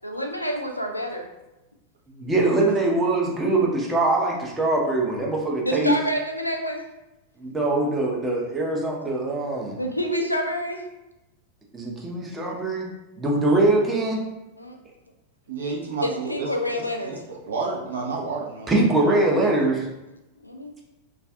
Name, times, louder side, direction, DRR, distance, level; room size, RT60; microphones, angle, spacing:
voice 1, 0.0-1.3 5.6-6.8 9.8-10.9 14.6-14.8 16.0-17.1 20.4-20.7, equal, 90° left, 3 dB, 0.3 m, -27 dB
voice 2, 2.1-5.9 7.4-9.8 11.7-12.9 13.2-14.2 18.7-19.9, right 2 dB, 15° right, -1 dB, 0.6 m, -22 dB
voice 3, 15.5-18.8, right 4 dB, 65° right, -2 dB, 0.6 m, -31 dB
2.5 x 2.3 x 3.4 m, 0.99 s
figure-of-eight pair, 90°, 0 cm